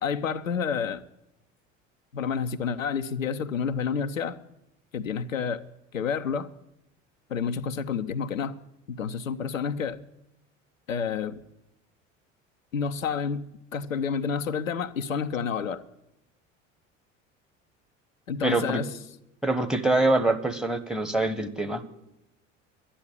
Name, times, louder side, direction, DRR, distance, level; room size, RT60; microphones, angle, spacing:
voice 1, 0.0-1.0 2.1-4.4 4.9-5.6 5.9-6.5 7.3-8.6 8.9-10.0 10.9-11.4 12.7-13.5 13.7-15.8 18.3-18.9, left 6 dB, 90° left, 8 dB, 0.6 m, -29 dB
voice 2, 18.4-18.8 19.4-21.8, right 2 dB, ahead, 14 dB, 1.3 m, -24 dB
12.0 x 9.9 x 8.9 m, 0.86 s
figure-of-eight pair, 65°, 38 cm